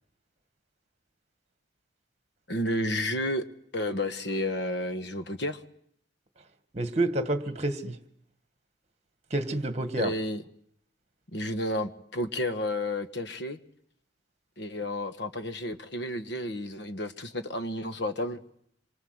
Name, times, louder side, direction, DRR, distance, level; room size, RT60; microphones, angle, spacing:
voice 1, 2.5-3.4 3.7-5.6 10.0-10.4 11.3-13.6 14.6-18.4, left 1 dB, 60° left, 1.6 m, -31 dB
voice 2, 6.7-8.0 9.3-10.1, right 1 dB, 35° right, 2.0 m, -28 dB
26.5 x 24.0 x 8.1 m
head